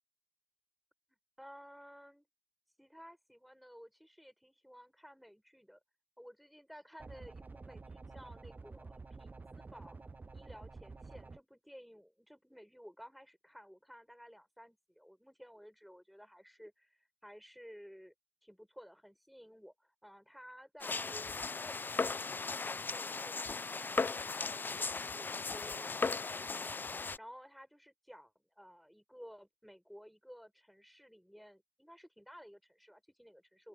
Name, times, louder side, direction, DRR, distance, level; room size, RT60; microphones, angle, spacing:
voice 1, 1.1-2.3 2.8-5.8 6.2-10.0 10.3-18.1 18.4-33.7, equal, ahead, 6.5 m, -55 dB
sound 1, 7.0-11.4, right 3 dB, 50° right, 0.4 m, -50 dB
sound 2, 20.8-27.2, left 4 dB, 65° left, 0.4 m, -37 dB
open air
wide cardioid pair, 55°, 4 cm